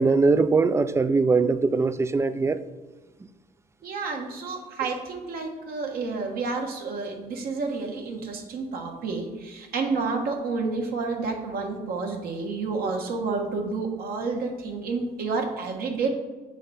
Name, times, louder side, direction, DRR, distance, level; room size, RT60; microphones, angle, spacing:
voice 1, 0.0-2.6 12.8-12.9, right 4 dB, 15° right, 13 dB, 0.3 m, -21 dB
voice 2, 3.8-16.1, right 4 dB, 65° right, 2 dB, 1.3 m, -30 dB
6.9 x 3.3 x 5.5 m, 1.3 s
cardioid pair, 110°, 17 cm